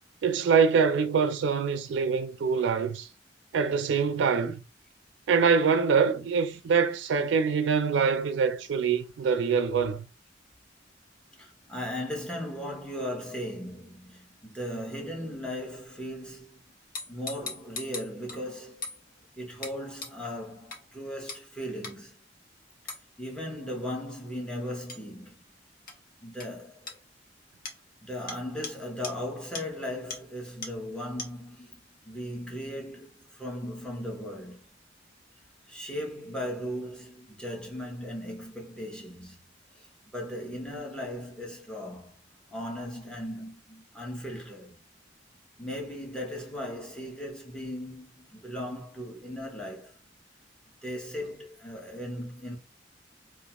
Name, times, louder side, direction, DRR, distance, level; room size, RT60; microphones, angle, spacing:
voice 1, 0.2-3.1 3.5-4.6 5.3-10.1, right 6 dB, 75° right, 0.3 m, -24 dB
voice 2, 11.3-16.7 17.1-18.9 19.4-22.2 23.2-25.4 26.2-26.9 28.0-34.6 35.7-39.4 39.7-39.9 40.1-42.2 42.5-44.7 45.6-50.0 50.8-52.6, equal, 5° left, 0.8 m, -37 dB
sound 1, 16.9-18.4 18.8-19.0 19.6-19.7 20.0-20.1 20.7-20.8 21.3-21.4 21.8-21.9 22.9-23.0 24.9-25.0 25.9-26.0 26.4-26.5 26.9-27.0 27.6-27.8 28.3-28.4 28.6-28.7 29.0-29.1 29.5-29.6 30.1-30.2 30.6-30.7 31.2-31.3, left 4 dB, 50° left, 0.7 m, -38 dB
2.3 x 2.3 x 2.9 m
head